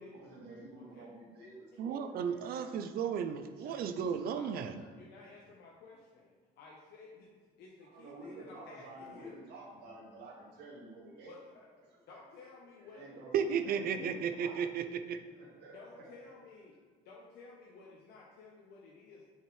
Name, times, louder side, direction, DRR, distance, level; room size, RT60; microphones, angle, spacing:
voice 1, 0.0-2.7 3.3-4.3 7.8-11.3 12.1-12.2 12.9-13.3 13.7-14.6 15.3-16.0, right 2 dB, 85° right, -3 dB, 1.9 m, -51 dB
voice 2, 0.8-1.1 1.7-1.8 4.3-7.3 7.6-9.4 11.3-13.2 13.6-14.6 15.7-16.7 17.0-19.3, left 4 dB, 75° left, -3 dB, 1.0 m, -54 dB
voice 3, 1.8-4.7 13.3-15.2, right 7 dB, 60° right, 8 dB, 0.5 m, -34 dB
6.9 x 5.6 x 3.2 m, 1.5 s
cardioid pair, 110°, 17 cm